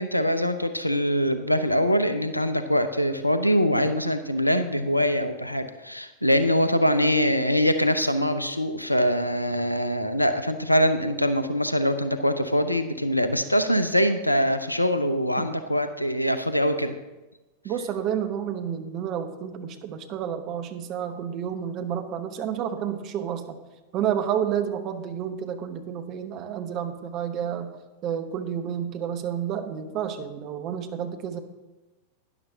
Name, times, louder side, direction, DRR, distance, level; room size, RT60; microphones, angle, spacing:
voice 1, 0.0-16.9, equal, 90° left, 10 dB, 0.6 m, -23 dB
voice 2, 17.6-23.6 23.9-27.8 28.0-31.4, right 9 dB, 35° right, 7 dB, 1.0 m, -30 dB
12.0 x 10.5 x 2.8 m, 1.1 s
figure-of-eight pair, 90°, 0 cm